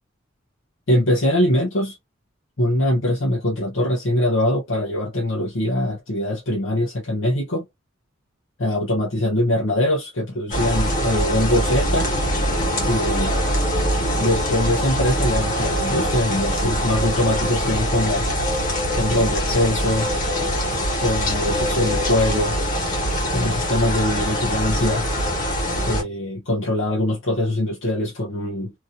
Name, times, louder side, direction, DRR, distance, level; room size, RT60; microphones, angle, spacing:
voice 1, 0.9-2.0 2.6-7.6 8.6-12.1 12.8-13.3 14.2-18.3 18.9-20.1 21.0-22.6 23.3-25.1 25.9-28.7, left 1 dB, 65° left, 0.9 m, -22 dB
sound 1, 10.5-26.0, equal, 40° left, 1.6 m, -23 dB
3.0 x 2.6 x 2.5 m
head